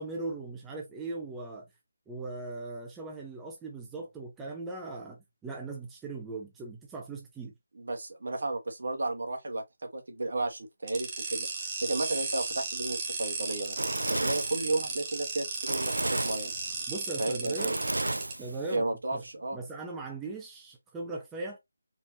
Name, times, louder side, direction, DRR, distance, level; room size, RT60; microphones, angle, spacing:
voice 1, 0.0-1.7 2.1-7.5 16.9-17.7 18.4-19.2 19.5-21.6, right 3 dB, 10° right, 0.7 m, -39 dB
voice 2, 7.8-9.6 9.9-16.5 17.2-17.8 18.2-18.3 18.7-19.6, right 2 dB, 65° right, 1.4 m, -33 dB
sound 1, 10.9-18.3, right 4 dB, 25° right, 1.3 m, -35 dB
Fire, 13.3-18.8, right 2 dB, 85° right, 0.3 m, -33 dB
4.4 x 2.7 x 2.8 m
figure-of-eight pair, 160°, 0 cm